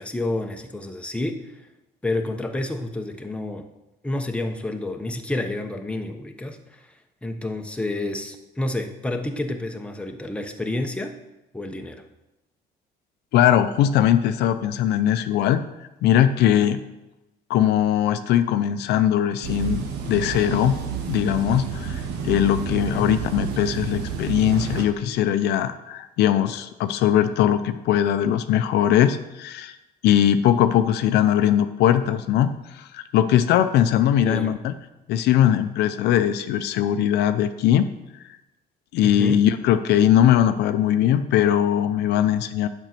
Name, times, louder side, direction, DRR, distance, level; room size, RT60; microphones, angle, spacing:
voice 1, 0.0-1.4 2.0-3.7 4.0-6.9 7.2-11.2 11.5-12.0 22.9-23.1 34.3-34.6 39.0-39.4, left 2 dB, 5° left, 4 dB, 1.0 m, -29 dB
voice 2, 13.3-15.6 16.0-16.8 17.5-20.8 21.1-29.7 30.0-34.7 35.1-37.8 38.9-42.7, left 10 dB, 80° left, 10 dB, 0.6 m, -20 dB
sound 1, 19.4-24.8, right 7 dB, 85° right, 1.4 m, -30 dB
9.0 x 5.4 x 7.6 m, 0.97 s
cardioid pair, 110°, 17 cm